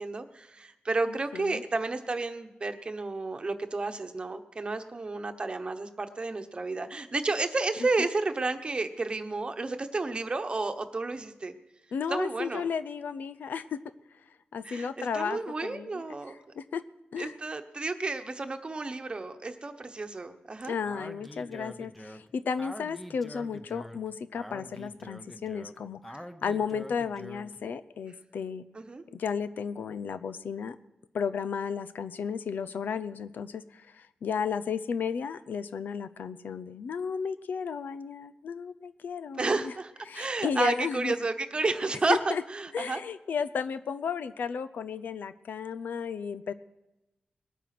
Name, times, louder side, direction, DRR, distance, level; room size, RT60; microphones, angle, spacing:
voice 1, 0.0-11.5 12.1-12.7 14.6-16.3 17.2-20.8 28.7-29.0 39.4-43.0, right 3 dB, 35° right, 7 dB, 1.0 m, -31 dB
voice 2, 1.1-1.6 11.9-13.8 14.5-16.8 17.1-17.3 20.7-28.6 29.1-30.8 31.1-39.7 40.1-41.1 42.1-42.4 42.7-46.5, left 6 dB, 90° left, 12 dB, 0.6 m, -34 dB
Speech, 20.9-27.6, equal, 5° left, 0.8 m, -45 dB
20.0 x 9.1 x 6.0 m, 0.99 s
wide cardioid pair, 105°, 3 cm